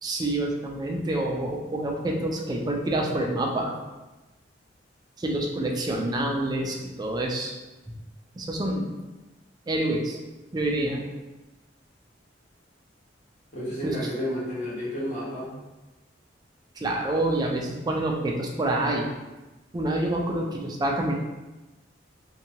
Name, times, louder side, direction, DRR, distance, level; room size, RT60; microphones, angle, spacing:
voice 1, 0.0-3.7 5.2-7.5 8.4-9.0 9.7-10.2 10.5-11.1 13.8-14.1 16.8-19.1 19.7-21.1, right 1 dB, 20° right, 0 dB, 0.3 m, -27 dB
voice 2, 13.5-15.5, equal, 40° left, -8 dB, 1.1 m, -31 dB
2.7 x 2.2 x 2.8 m, 1.1 s
head